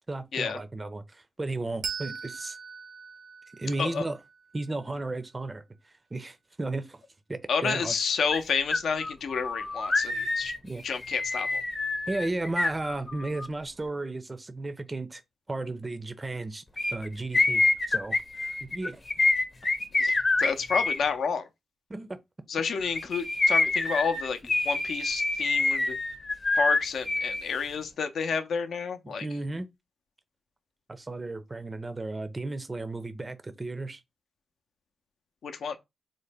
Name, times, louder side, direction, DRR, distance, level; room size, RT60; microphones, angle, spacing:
voice 1, 0.1-2.6 3.5-4.2 4.5-7.0 7.3-7.9 10.6-10.8 12.1-15.2 15.5-16.6 16.9-19.0 21.9-22.2 29.0-29.7 30.9-34.0, right 2 dB, 30° right, 0.4 m, -34 dB
Bell, 1.8-4.9, right 6 dB, 80° right, 0.6 m, -40 dB
voice 2, 7.5-10.5 10.8-11.6 20.0-20.1 20.4-21.5 22.5-26.0 26.5-29.3 35.4-35.8, left 5 dB, 75° left, 0.5 m, -30 dB
sound 1, 8.3-8.4 8.7-13.5 16.8-21.0 22.8-27.4 27.7-27.8, left 3 dB, 45° left, 0.8 m, -26 dB
3.7 x 2.1 x 3.3 m
supercardioid pair, 50°, 0 cm